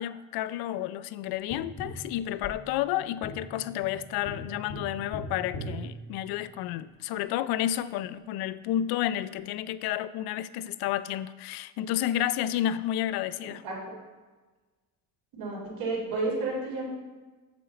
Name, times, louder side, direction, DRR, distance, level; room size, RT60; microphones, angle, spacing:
voice 1, 0.0-13.6, left 12 dB, 75° left, 15 dB, 0.5 m, -31 dB
Tap, 1.5-6.8 9.4-9.5, equal, 45° left, 1.0 m, -41 dB
voice 2, 13.6-14.0 15.4-16.9, right 3 dB, 65° right, -3 dB, 3.4 m, -31 dB
9.2 x 8.0 x 4.0 m, 1.3 s
cardioid pair, 170°, 38 cm